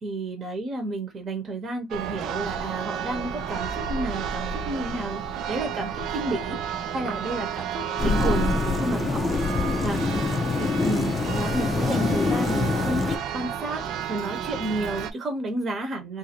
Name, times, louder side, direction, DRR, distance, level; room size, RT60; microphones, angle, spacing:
voice 1, 0.0-5.2 5.5-9.5 9.8-13.8 14.1-16.2, right 2 dB, 45° right, 1.0 m, -31 dB
Church bell, 1.9-15.1, right 8 dB, 75° right, 0.4 m, -32 dB
sound 1, 8.0-13.2, left 4 dB, 30° left, 0.4 m, -25 dB
2.6 x 2.6 x 2.8 m
cardioid pair, 95°, 0 cm